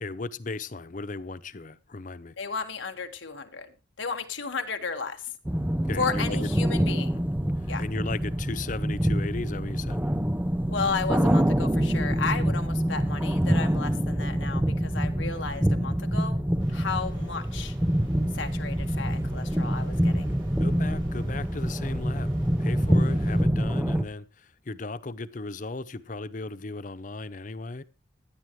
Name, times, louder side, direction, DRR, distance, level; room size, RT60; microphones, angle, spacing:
voice 1, 0.0-2.3 5.9-6.5 7.6-10.1 20.6-22.3 22.6-27.8, left 3 dB, 40° left, 0.6 m, -36 dB
voice 2, 2.4-3.7 4.0-5.3 6.0-7.2 7.7-7.8 10.7-16.4 16.7-17.7 18.3-20.3, left 5 dB, 75° left, 1.6 m, -33 dB
sound 1, 5.4-24.0, equal, 10° right, 0.6 m, -26 dB
sound 2, 16.6-23.4, right 2 dB, 85° right, 6.1 m, -55 dB
17.0 x 12.0 x 3.1 m
head